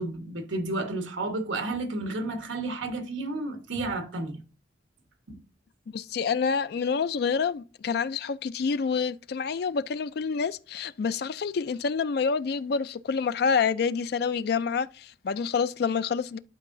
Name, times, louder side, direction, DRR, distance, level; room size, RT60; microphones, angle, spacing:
voice 1, 0.0-4.4 5.3-5.4, right 2 dB, 75° right, 1.1 m, -31 dB
voice 2, 5.9-16.4, left 5 dB, 55° left, 0.3 m, -27 dB
11.0 x 4.6 x 2.6 m
head